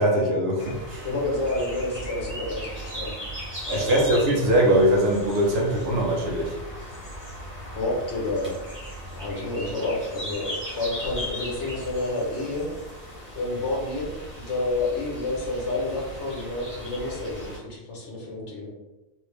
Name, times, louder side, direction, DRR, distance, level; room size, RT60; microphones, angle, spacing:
voice 1, 0.0-1.1 3.7-6.6, right 1 dB, 60° right, -1 dB, 0.9 m, -22 dB
sound 1, 0.6-17.6, equal, 10° right, 1.1 m, -38 dB
voice 2, 1.0-3.1 3.6-4.1 7.7-8.6 9.1-12.7 13.3-18.7, left 2 dB, 65° left, -3 dB, 1.3 m, -29 dB
3.6 x 2.7 x 3.3 m, 1.1 s
omnidirectional pair, 1.3 m